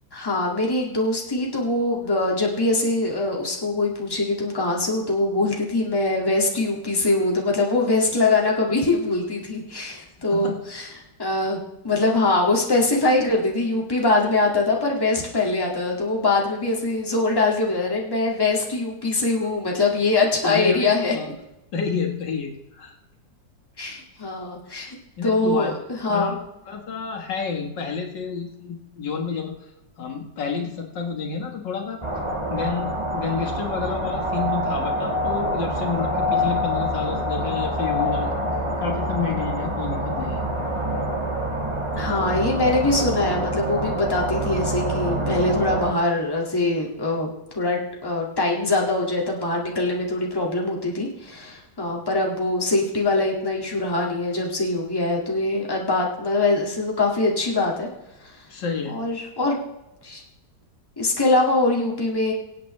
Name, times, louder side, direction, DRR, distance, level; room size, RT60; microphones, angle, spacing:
voice 1, 0.1-10.9 11.2-11.6 11.8-21.2 23.8-25.0 25.2-26.3 41.9-57.9 58.2-58.4 58.9-59.6 60.0-60.2 61.0-62.3, left 2 dB, 15° left, -2 dB, 1.9 m, -23 dB
voice 2, 20.4-21.3 21.7-23.0 23.9-24.0 25.2-25.7 26.1-26.4 26.7-29.7 30.0-32.0 32.5-38.4 38.8-40.5 58.5-59.0, left 5 dB, 75° left, 2 dB, 2.2 m, -29 dB
sound 1, 32.0-45.9, equal, 20° right, 1.3 m, -26 dB
24.5 x 8.4 x 3.2 m, 0.92 s
omnidirectional pair, 2.0 m